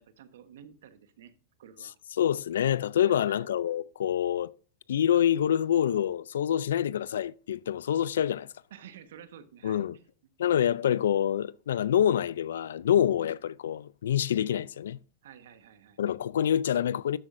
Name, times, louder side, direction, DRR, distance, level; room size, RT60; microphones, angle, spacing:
voice 1, 0.0-1.3 1.6-2.0 3.0-3.5 8.7-10.1 15.2-16.0, right 9 dB, 80° right, 1.2 m, -51 dB
voice 2, 2.2-4.5 4.9-8.5 9.6-10.0 10.4-15.0 16.0-17.2, left 10 dB, 90° left, 0.3 m, -26 dB
12.5 x 7.3 x 2.6 m
supercardioid pair, 125°, 0 cm